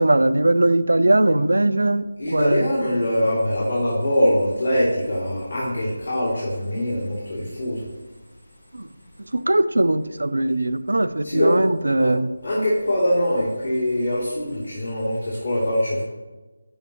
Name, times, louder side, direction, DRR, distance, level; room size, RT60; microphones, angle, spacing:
voice 1, 0.0-2.6 8.7-8.9 9.3-12.3, right 2 dB, 80° right, 14 dB, 0.4 m, -20 dB
voice 2, 2.2-7.9 11.2-11.6 12.0-12.1 12.4-16.0, left 1 dB, 75° left, -8 dB, 2.7 m, -23 dB
12.0 x 5.4 x 3.0 m, 1.2 s
figure-of-eight pair, 160°, 0 cm